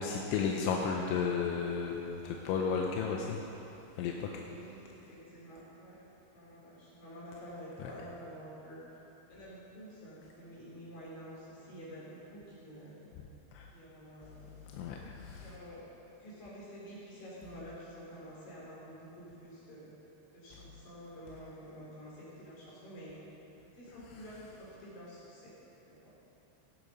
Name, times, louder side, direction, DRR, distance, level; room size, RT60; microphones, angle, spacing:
voice 1, 0.0-3.4 4.0-4.3 7.8-7.9 13.5-13.7 14.7-15.5, left 6 dB, 85° left, 0 dB, 3.1 m, -33 dB
voice 2, 4.4-6.0 6.3-8.8 9.3-13.0 13.7-14.5 15.3-15.9 16.2-20.0 20.3-23.1 23.7-25.6 25.8-26.1, equal, 50° left, -7 dB, 5.2 m, -49 dB
17.0 x 8.5 x 5.4 m, 3.0 s
omnidirectional pair, 5.3 m